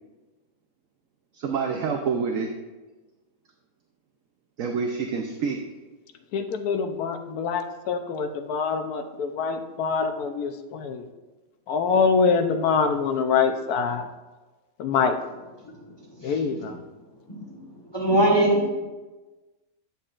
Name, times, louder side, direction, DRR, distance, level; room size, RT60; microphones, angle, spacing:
voice 1, 1.3-2.5 4.6-5.6, right 5 dB, 65° right, 3 dB, 1.0 m, -27 dB
voice 2, 6.3-11.1 11.7-14.1 14.8-15.2 16.2-16.8, left 5 dB, 80° left, 7 dB, 1.2 m, -25 dB
voice 3, 15.6-16.6 17.3-18.8, right 1 dB, 20° left, -2 dB, 1.1 m, -24 dB
10.5 x 6.9 x 2.4 m, 1.2 s
omnidirectional pair, 1.6 m